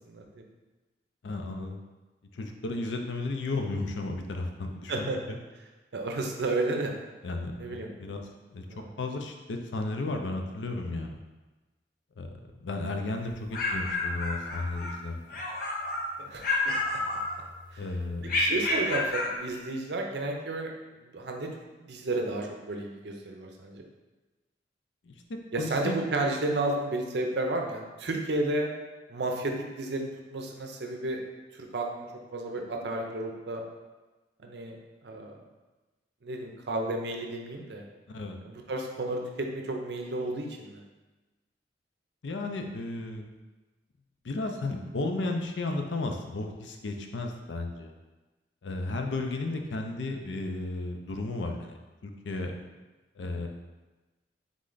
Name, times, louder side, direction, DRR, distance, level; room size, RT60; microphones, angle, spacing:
voice 1, 0.1-0.5 4.9-5.2 5.9-6.9 7.6-7.9 8.7-9.0 16.2-16.7 17.7-17.9 18.4-20.7 21.0-21.5 21.8-23.8 25.5-28.7 29.1-31.2 31.5-32.1 32.3-33.6 34.4-34.8 35.0-35.4 36.2-37.8 38.4-40.8, right 2 dB, 65° right, 2 dB, 0.6 m, -32 dB
voice 2, 1.2-1.8 2.3-5.4 7.2-8.2 8.5-8.6 9.0-11.2 12.2-12.3 12.6-15.4 17.8-18.5 25.0-26.0 38.1-38.4 42.2-43.3 44.2-47.9 48.6-51.7 52.0-52.5 53.2-53.5, left 2 dB, 75° left, 4 dB, 0.5 m, -34 dB
sound 1, 13.3-15.0 15.3-16.1 16.4-17.7 18.3-19.4, left 2 dB, 50° left, 0.8 m, -30 dB
3.7 x 3.2 x 3.9 m, 1.2 s
head